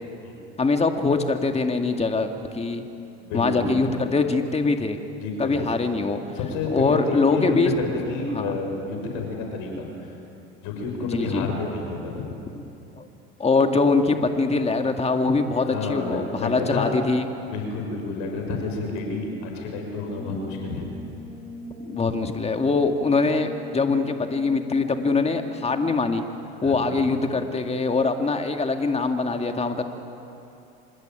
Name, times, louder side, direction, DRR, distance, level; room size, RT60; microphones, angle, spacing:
voice 1, 0.6-2.9 3.3-5.0 5.4-6.2 6.7-7.7 8.3-8.6 11.0-11.5 13.0-13.1 13.4-17.3 21.8-26.2 26.6-29.8, left 3 dB, 20° left, 5 dB, 2.1 m, -23 dB
voice 2, 3.2-3.7 5.2-5.6 6.3-10.1 10.6-12.3 15.6-17.0 17.5-20.9 26.6-26.9, left 3 dB, 65° left, 2 dB, 6.3 m, -30 dB
Brass instrument, 20.0-26.4, left 4 dB, 65° right, 6.9 m, -42 dB
26.0 x 21.0 x 9.2 m, 2.8 s
hypercardioid pair, 80°, 32 cm